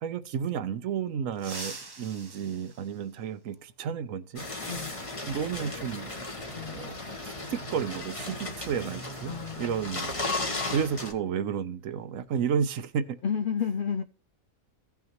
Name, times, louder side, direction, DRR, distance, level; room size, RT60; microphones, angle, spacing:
voice 1, 0.0-4.8 5.3-6.1 6.6-6.9 7.2-10.1 10.7-13.2, right 7 dB, 75° right, 1.1 m, -32 dB
sound 1, 1.3-3.7 5.4-5.5 6.7-6.8 8.4-8.6 9.0-9.2 9.7-11.8 12.1-12.4 12.8-13.2, right 3 dB, 25° right, 0.6 m, -46 dB
sound 2, 4.4-11.1, left 2 dB, 25° left, 1.2 m, -35 dB
voice 2, 6.5-7.5 9.3-9.9 10.3-10.8 13.2-14.0, left 7 dB, 70° left, 0.5 m, -33 dB
16.0 x 5.8 x 3.0 m
omnidirectional pair, 1.4 m